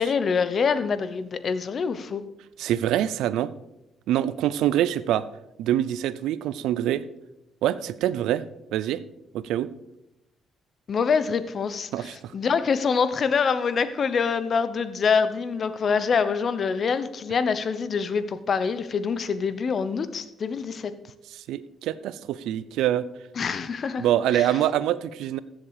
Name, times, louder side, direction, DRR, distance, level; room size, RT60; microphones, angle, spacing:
voice 1, 0.0-2.2 10.9-20.9 23.4-24.1 24.3-24.5, left 5 dB, 50° left, 13 dB, 0.9 m, -25 dB
voice 2, 2.6-3.5 4.1-5.3 5.6-7.0 7.6-8.4 8.7-9.0 9.3-9.7 11.9-12.3 21.3-23.1 24.0-25.4, right 12 dB, 90° right, 16 dB, 0.5 m, -25 dB
14.5 x 7.4 x 4.9 m, 0.91 s
cardioid pair, 90°, 0 cm